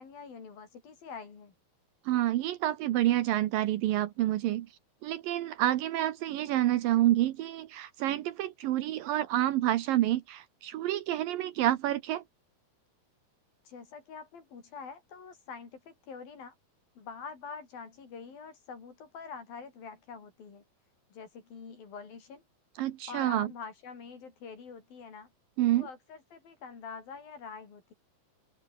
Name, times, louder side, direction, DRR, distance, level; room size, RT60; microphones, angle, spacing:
voice 1, 0.0-1.5 13.6-16.5 17.0-20.6 21.1-22.4 23.1-25.3 25.7-27.9, left 5 dB, 70° left, 6.6 m, -45 dB
voice 2, 2.1-4.7 5.0-12.2 22.8-23.5 25.6-25.9, right 14 dB, 75° right, 2.7 m, -28 dB
open air
omnidirectional pair, 4.2 m